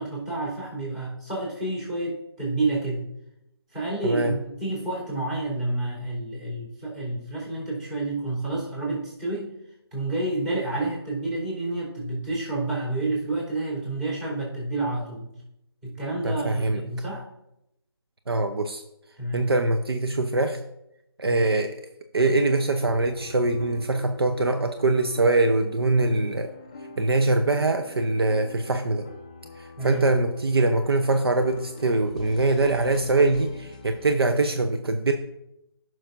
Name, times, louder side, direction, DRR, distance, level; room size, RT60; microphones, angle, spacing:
voice 1, 0.0-3.1 3.7-9.6 9.9-15.3 15.8-17.3 19.2-19.5 21.3-21.4 29.8-30.1, right 2 dB, 20° right, -6 dB, 3.5 m, -29 dB
voice 2, 16.2-16.8 18.3-18.8 19.3-20.6 21.2-21.7 22.1-26.5 27.0-29.0 29.6-35.1, right 2 dB, 65° right, 6 dB, 0.7 m, -23 dB
sound 1, 22.2-34.1, left 3 dB, 20° left, 0.4 m, -44 dB
14.0 x 6.1 x 2.6 m, 0.84 s
figure-of-eight pair, 150°, 14 cm